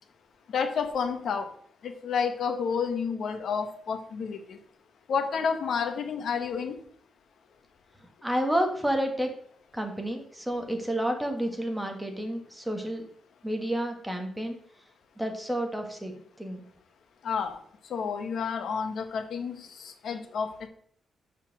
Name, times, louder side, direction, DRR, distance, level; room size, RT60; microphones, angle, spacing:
voice 1, 0.5-1.5 1.8-4.6 5.1-6.8 17.2-17.6 17.9-20.7, left 6 dB, 70° left, 7 dB, 1.3 m, -30 dB
voice 2, 8.2-9.3 9.7-13.0 13.4-14.6 15.2-16.7, equal, 5° right, 3 dB, 1.6 m, -30 dB
6.9 x 5.7 x 6.0 m, 0.62 s
wide cardioid pair, 135°, 0 cm